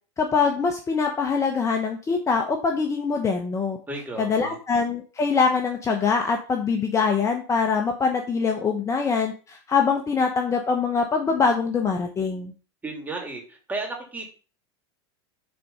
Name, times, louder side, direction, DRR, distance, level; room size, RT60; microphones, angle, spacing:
voice 1, 0.2-3.8 4.2-12.5, left 5 dB, 20° left, 3 dB, 1.1 m, -23 dB
voice 2, 3.9-4.6 12.8-13.4 13.7-14.3, right 2 dB, 10° right, 0 dB, 3.0 m, -33 dB
6.9 x 4.2 x 5.6 m, 0.38 s
supercardioid pair, 120°, 14 cm